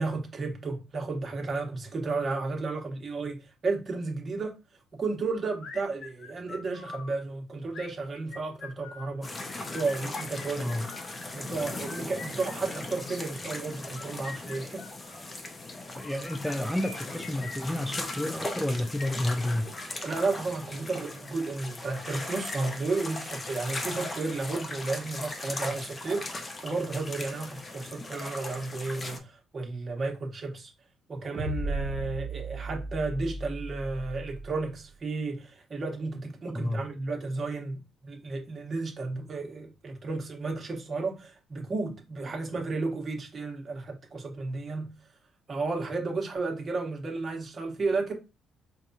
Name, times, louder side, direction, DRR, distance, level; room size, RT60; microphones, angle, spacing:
voice 1, 0.0-4.5 4.9-9.3 9.7-10.7 11.3-14.8 20.0-30.7 31.1-44.9 45.5-48.1, right 3 dB, 40° right, 1.1 m, -33 dB
sound 1, 5.6-7.1 7.7-9.1 9.6-11.2 11.7-13.3 13.8-15.3 16.0-18.3 18.9-20.4, left 4 dB, 65° left, 0.8 m, -45 dB
sound 2, 9.2-29.2, left 2 dB, 30° left, 0.7 m, -38 dB
voice 2, 10.6-10.9 16.0-19.7 36.5-36.8, left 1 dB, ahead, 0.3 m, -30 dB
sound 3, 31.3-34.8, right 2 dB, 65° right, 0.7 m, -36 dB
4.5 x 2.3 x 2.7 m
cardioid pair, 90°, 0 cm